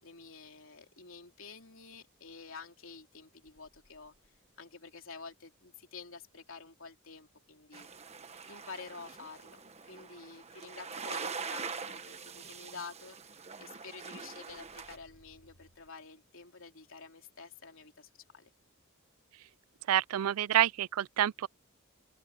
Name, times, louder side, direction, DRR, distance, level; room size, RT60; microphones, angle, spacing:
voice 1, 0.0-4.1 4.6-7.9 8.5-9.6 9.8-18.5, left 4 dB, 65° left, 3.5 m, -49 dB
sound 1, 3.4-4.7 6.3-7.3 14.2-15.9, equal, 90° left, 7.6 m, -65 dB
sound 2, 7.7-15.0, right 5 dB, 30° right, 1.3 m, -43 dB
voice 2, 19.9-21.5, right 11 dB, 85° right, 0.4 m, -28 dB
open air
head